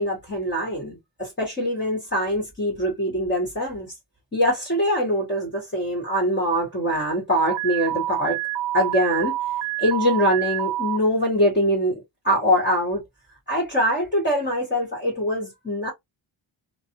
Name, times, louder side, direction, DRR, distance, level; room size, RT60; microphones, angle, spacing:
voice 1, 0.0-3.9 4.3-8.4 8.7-9.4 9.8-13.0 13.5-15.9, equal, 25° left, 1.1 m, -23 dB
Alarm, 7.5-11.0, right 14 dB, 75° right, 0.5 m, -27 dB
2.4 x 2.0 x 2.7 m
wide cardioid pair, 115°, 47 cm